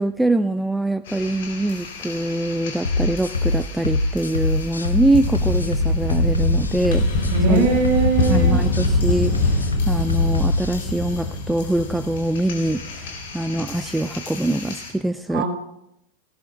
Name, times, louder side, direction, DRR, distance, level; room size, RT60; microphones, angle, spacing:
voice 1, 0.0-7.7 8.3-15.4, right 1 dB, 5° right, 12 dB, 0.4 m, -24 dB
sound 1, 1.1-14.9, left 2 dB, 55° left, 3.6 m, -27 dB
sound 2, 2.8-10.8, left 2 dB, 75° left, 1.0 m, -23 dB
voice 2, 7.3-8.6 15.3-15.5, right 4 dB, 45° right, -1 dB, 5.5 m, -20 dB
18.0 x 17.5 x 2.4 m, 0.82 s
figure-of-eight pair, 90°, 0 cm